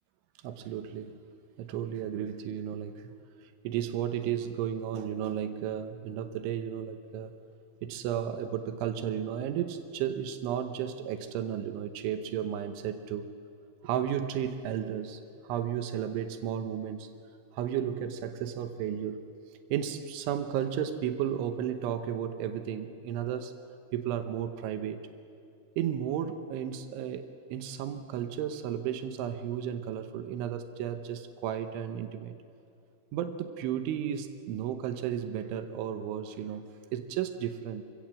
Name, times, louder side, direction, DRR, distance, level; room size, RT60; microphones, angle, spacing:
voice 1, 0.4-1.1 1.6-3.0 3.6-7.3 7.8-13.3 13.8-17.1 17.5-19.3 19.7-23.5 23.9-25.1 25.8-32.3 33.1-37.8, right 9 dB, 80° right, 8 dB, 3.4 m, -33 dB
26.0 x 16.5 x 7.6 m, 2.6 s
omnidirectional pair, 5.6 m